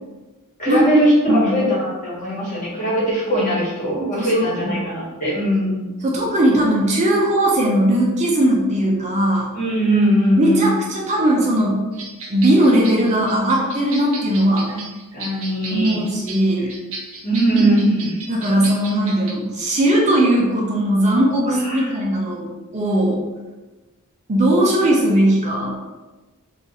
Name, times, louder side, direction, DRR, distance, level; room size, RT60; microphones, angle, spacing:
voice 1, 0.6-5.9 9.5-10.7 14.7-14.8 15.1-16.0 17.2-18.2 21.4-21.9, equal, 35° left, -7 dB, 1.3 m, -20 dB
voice 2, 4.1-4.8 6.0-9.5 10.4-11.9 12.3-14.7 15.7-16.7 18.3-23.2 24.3-25.8, right 1 dB, 30° right, -2 dB, 0.5 m, -18 dB
sound 1, 11.9-19.3, right 3 dB, 65° right, 0.7 m, -35 dB
2.9 x 2.4 x 3.8 m, 1.2 s
head